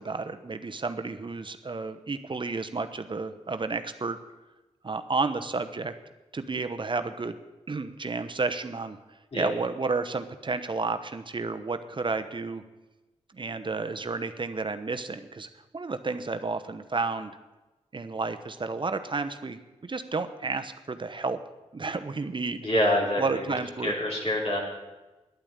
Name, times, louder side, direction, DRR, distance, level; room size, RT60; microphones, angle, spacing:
voice 1, 0.0-4.2 4.8-5.9 6.3-7.4 7.7-9.0 9.3-12.6 13.3-17.3 17.9-21.4 21.7-22.6 23.2-23.9, right 3 dB, 40° right, 9 dB, 0.9 m, -31 dB
voice 2, 22.6-23.2 23.8-24.6, left 1 dB, 55° left, -3 dB, 3.8 m, -25 dB
10.5 x 8.8 x 8.7 m, 1.1 s
cardioid pair, 50°, 12 cm